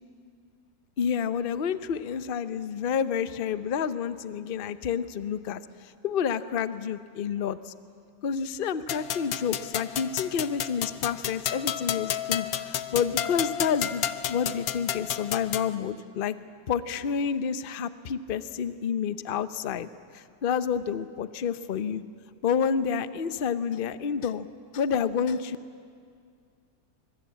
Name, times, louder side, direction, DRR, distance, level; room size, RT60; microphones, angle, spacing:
voice 1, 1.0-5.6 6.0-7.7 8.2-16.4 16.7-19.9 20.1-22.0 22.4-24.5 24.7-25.6, left 7 dB, 50° left, 13 dB, 0.7 m, -29 dB
sound 1, 8.9-15.7, left 10 dB, 65° left, 1.2 m, -31 dB
24.0 x 23.0 x 8.6 m, 2.2 s
omnidirectional pair, 1.9 m